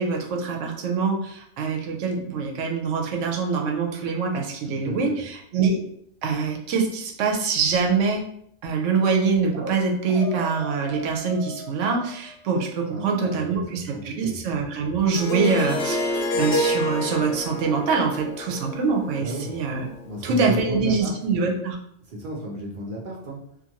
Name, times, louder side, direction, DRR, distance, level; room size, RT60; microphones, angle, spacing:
voice 1, 0.0-5.8 6.2-8.2 8.6-19.9 20.2-21.8, right 5 dB, 75° right, 1 dB, 0.9 m, -24 dB
voice 2, 4.7-5.2 12.9-14.4 19.2-19.5 20.0-21.1 22.1-23.4, right 1 dB, 55° right, -2 dB, 0.6 m, -33 dB
sound 1, 9.5-9.8 10.1-12.9, right 1 dB, 30° right, 0.9 m, -38 dB
Harp, 15.1-20.1, left 1 dB, 65° left, 0.8 m, -28 dB
2.5 x 2.5 x 2.8 m, 0.71 s
omnidirectional pair, 1.3 m